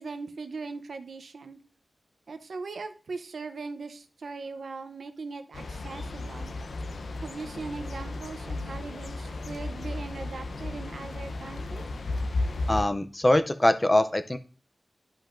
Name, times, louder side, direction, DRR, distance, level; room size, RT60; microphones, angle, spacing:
voice 1, 0.0-1.6 2.3-6.5 7.2-11.8, right 4 dB, 75° right, 9 dB, 0.6 m, -39 dB
sound 1, 5.5-12.9, left 2 dB, 85° left, 0.6 m, -34 dB
voice 2, 12.7-14.4, left 1 dB, 20° left, 10 dB, 0.5 m, -23 dB
11.0 x 5.1 x 2.5 m, 0.38 s
wide cardioid pair, 120°, 0 cm